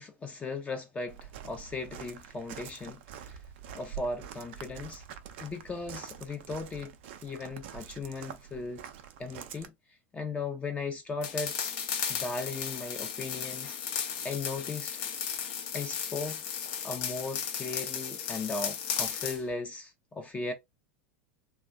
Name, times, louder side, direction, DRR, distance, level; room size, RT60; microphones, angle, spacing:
voice 1, 0.0-3.4 3.7-5.0 5.4-6.9 7.2-8.8 9.2-9.7 10.1-11.5 12.1-13.8 14.2-14.9 15.7-16.4 16.8-20.5, left 3 dB, 20° left, 0.6 m, -37 dB
Walk footsteps, 1.1-9.7, right 9 dB, 55° right, 0.5 m, -46 dB
sound 1, 11.2-19.4, left 8 dB, 55° left, 0.7 m, -35 dB
3.0 x 2.3 x 2.4 m
figure-of-eight pair, 90°, 7 cm